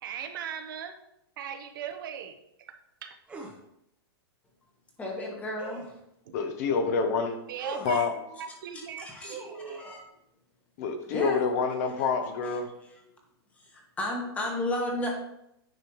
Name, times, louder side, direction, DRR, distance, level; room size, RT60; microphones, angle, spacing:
voice 1, 0.0-1.0 1.4-2.7 3.0-3.2 6.2-6.3 7.5-9.8, right 8 dB, 55° right, 7 dB, 0.8 m, -39 dB
sound 1, 3.3-3.6 5.6-6.0 7.6-8.0 9.3-10.0, right 3 dB, 10° right, 0.8 m, -41 dB
voice 2, 5.0-5.9 6.6-6.7 8.7-9.4 9.8-10.0 11.1-11.4 12.4-12.5 13.6-15.1, left 1 dB, 10° left, 0 dB, 1.2 m, -33 dB
voice 3, 6.3-7.4 7.8-8.1 10.8-12.7, left 5 dB, 40° left, 7 dB, 0.7 m, -27 dB
9.1 x 5.3 x 3.0 m, 0.80 s
hypercardioid pair, 165°, 14 cm